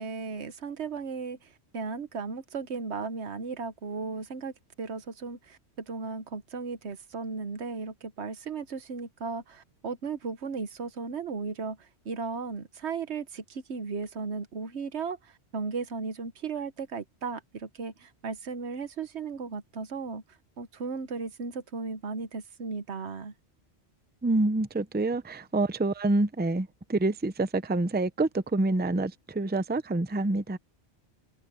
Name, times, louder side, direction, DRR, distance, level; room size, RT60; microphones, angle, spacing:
voice 1, 0.0-4.5 4.8-20.2 20.6-23.3, right 4 dB, 80° right, 1.4 m, -36 dB
voice 2, 24.2-30.6, right 2 dB, 10° right, 0.6 m, -27 dB
omnidirectional pair, 1.1 m